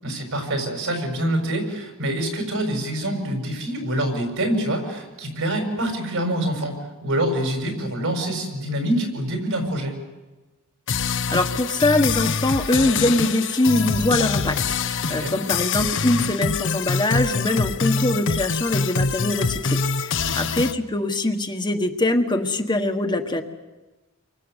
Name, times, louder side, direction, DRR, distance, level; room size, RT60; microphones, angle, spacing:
voice 1, 0.0-10.0 15.1-15.3 20.2-20.5, right 1 dB, 70° right, 4 dB, 6.8 m, -26 dB
sound 1, 10.9-20.7, left 5 dB, 60° left, 1.0 m, -25 dB
voice 2, 11.0-23.4, left 2 dB, 20° left, 4 dB, 1.5 m, -23 dB
29.0 x 24.0 x 8.2 m, 1.2 s
head